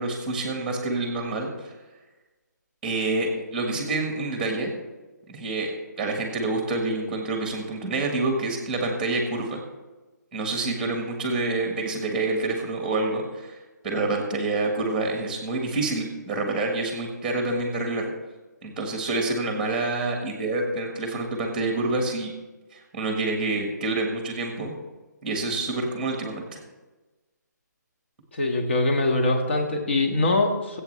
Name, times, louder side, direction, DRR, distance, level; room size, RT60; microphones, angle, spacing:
voice 1, 0.0-1.7 2.8-4.7 5.3-5.7 6.0-9.6 10.3-13.6 13.8-18.1 18.6-22.3 22.7-24.7 25.2-26.6, right 2 dB, 5° right, 2 dB, 1.4 m, -27 dB
voice 2, 28.3-30.8, left 2 dB, 40° left, 3 dB, 1.8 m, -23 dB
22.5 x 8.4 x 3.3 m, 1.2 s
hypercardioid pair, 180°, 10 cm